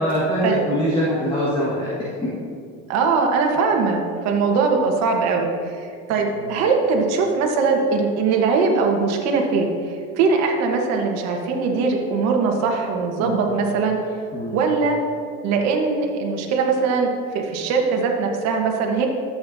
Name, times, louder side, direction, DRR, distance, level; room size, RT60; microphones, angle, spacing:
voice 1, 0.0-2.3 6.1-6.3 13.2-13.4 14.3-14.6, equal, 15° left, -8 dB, 1.7 m, -23 dB
voice 2, 2.9-9.7 10.2-14.0 14.5-15.0 15.4-17.1 17.3-19.1, right 4 dB, 65° right, 2 dB, 1.5 m, -21 dB
13.0 x 7.9 x 2.8 m, 2.3 s
cardioid pair, 130°, 29 cm